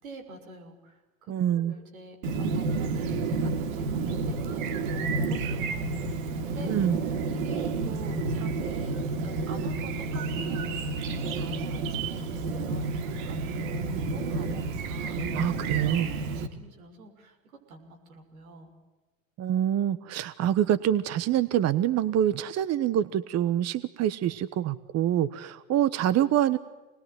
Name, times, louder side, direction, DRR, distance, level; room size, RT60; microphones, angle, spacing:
voice 1, 0.0-6.8 7.3-8.9 9.2-15.3 16.2-18.7, right 2 dB, 90° right, 6 dB, 6.2 m, -47 dB
voice 2, 1.3-1.7 6.6-7.0 15.3-16.1 19.4-26.6, right 11 dB, 40° right, 15 dB, 1.2 m, -26 dB
Chirp tweet, 2.2-16.5, right 3 dB, 70° right, 3.2 m, -30 dB
27.0 x 20.5 x 9.4 m, 1.2 s
hypercardioid pair, 100°, 41 cm